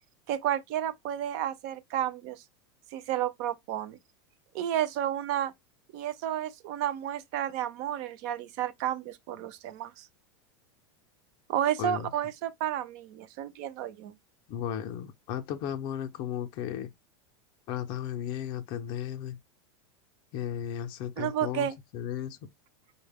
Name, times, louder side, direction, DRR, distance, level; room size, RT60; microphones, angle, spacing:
voice 1, 0.3-2.4 2.9-4.0 4.5-5.5 5.9-10.1 11.5-14.2 21.2-21.8, right 11 dB, 40° right, 0.5 m, -31 dB
voice 2, 14.5-16.9 17.7-19.4 20.3-22.5, left 10 dB, 30° left, 0.5 m, -35 dB
5.5 x 2.1 x 3.4 m
supercardioid pair, 175°, 14 cm